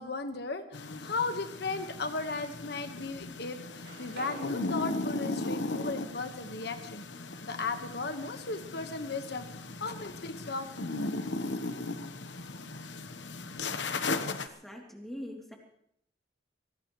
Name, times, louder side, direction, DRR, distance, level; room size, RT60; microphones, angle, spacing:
voice 1, 0.0-7.0 7.4-9.4 9.8-10.7, left 3 dB, 65° left, 7 dB, 1.4 m, -36 dB
sound 1, 0.7-14.5, left 3 dB, 85° left, 1.1 m, -37 dB
sound 2, 1.0-1.6 2.1-3.2 3.4-7.4, right 3 dB, 60° right, 3.0 m, -53 dB
voice 2, 14.3-15.6, equal, ahead, 0 dB, 3.1 m, -43 dB
24.0 x 18.0 x 3.2 m, 0.69 s
head